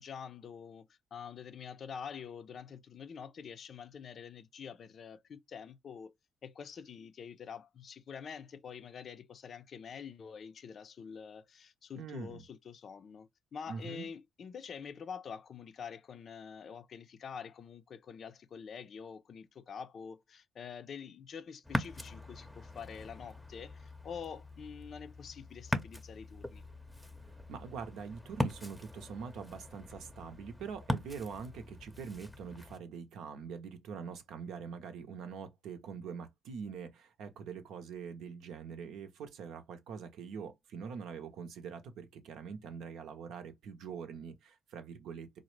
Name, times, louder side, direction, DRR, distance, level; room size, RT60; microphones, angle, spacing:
voice 1, 0.0-6.1 6.4-26.6, left 7 dB, 55° left, 0.4 m, -46 dB
voice 2, 12.0-12.4 13.7-14.1 27.5-45.4, right 6 dB, 75° right, 0.7 m, -44 dB
Ocean, 21.6-32.8, left 1 dB, 5° left, 0.7 m, -41 dB
3.8 x 2.0 x 3.1 m
supercardioid pair, 60°, 0 cm